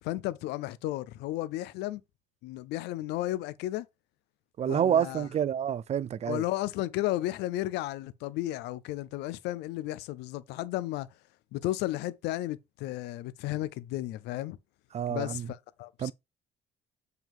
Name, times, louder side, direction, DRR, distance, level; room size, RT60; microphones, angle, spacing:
voice 1, 0.0-2.0 2.4-3.9 4.7-5.3 6.3-11.1 11.5-14.6 15.1-16.1, left 15 dB, 90° left, 0.6 m, -33 dB
voice 2, 4.6-6.4 14.9-15.5 16.0-16.1, right 9 dB, 40° right, 0.4 m, -28 dB
7.3 x 5.8 x 3.5 m
cardioid pair, 110°, 17 cm